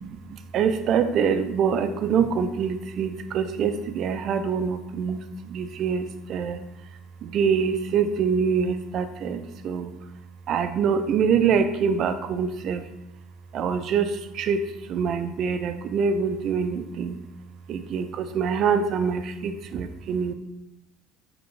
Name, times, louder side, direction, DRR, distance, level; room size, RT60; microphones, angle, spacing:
voice 1, 0.0-6.6 7.2-9.9 10.5-12.8 13.5-14.6 14.9-17.2 17.7-20.3, right 6 dB, 50° right, 9 dB, 0.4 m, -25 dB
5.0 x 3.3 x 3.2 m, 0.89 s
figure-of-eight pair, 60°, 0 cm